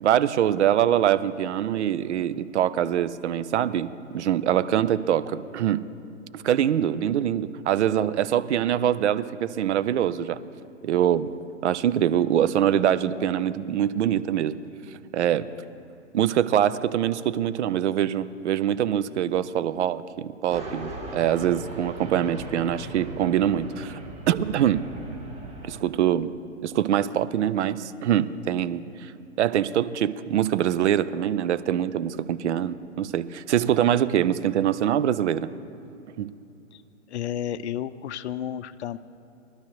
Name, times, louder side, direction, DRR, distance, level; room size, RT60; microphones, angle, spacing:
voice 1, 0.0-5.9 6.3-10.4 10.8-11.3 11.6-14.6 15.1-15.5 16.1-24.0 24.3-24.9 25.7-26.3 26.6-29.1 29.4-35.5 36.2-36.3, right 10 dB, 65° right, 16 dB, 0.7 m, -24 dB
sound 1, 20.5-25.8, right 2 dB, 15° right, 1.7 m, -38 dB
voice 2, 37.1-39.0, left 10 dB, 65° left, 15 dB, 0.6 m, -32 dB
21.0 x 12.0 x 3.2 m, 2.7 s
hypercardioid pair, 120°, 37 cm